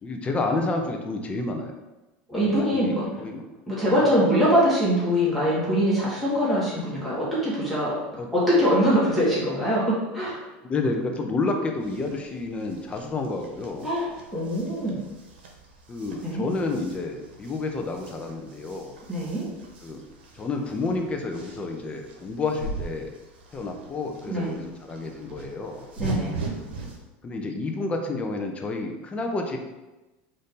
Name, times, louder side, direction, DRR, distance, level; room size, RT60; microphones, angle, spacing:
voice 1, 0.0-1.7 2.3-3.4 3.9-4.0 8.2-8.3 10.6-13.9 15.9-18.9 19.8-20.0 20.3-23.1 23.5-25.9 27.2-29.6, left 3 dB, 20° left, 3 dB, 0.6 m, -30 dB
voice 2, 2.3-3.0 3.7-7.9 8.3-10.5 13.8-15.0 16.2-16.4 19.1-19.4 24.3-24.5 26.0-26.3, equal, ahead, -9 dB, 1.4 m, -23 dB
sound 1, 11.7-27.0, right 3 dB, 85° right, 0.9 m, -40 dB
4.0 x 2.7 x 3.6 m, 1.1 s
supercardioid pair, 125°, 6 cm